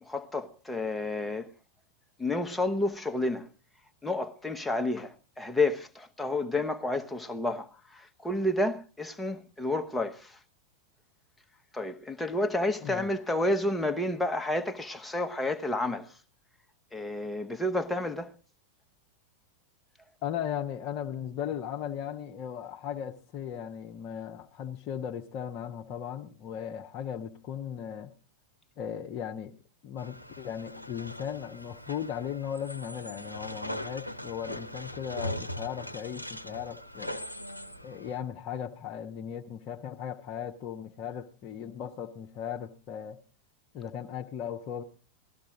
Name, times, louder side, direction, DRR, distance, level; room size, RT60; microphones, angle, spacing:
voice 1, 0.0-1.5 2.2-3.5 4.0-10.4 11.7-16.2 16.9-18.3, left 2 dB, 5° left, 0.9 m, -30 dB
voice 2, 20.2-28.1 28.8-29.5 29.8-37.2 37.8-43.2 43.7-44.8, left 9 dB, 40° left, 0.8 m, -37 dB
sound 1, 30.0-38.2, equal, 85° left, 0.6 m, -40 dB
17.0 x 13.0 x 3.7 m
figure-of-eight pair, 90°, 0 cm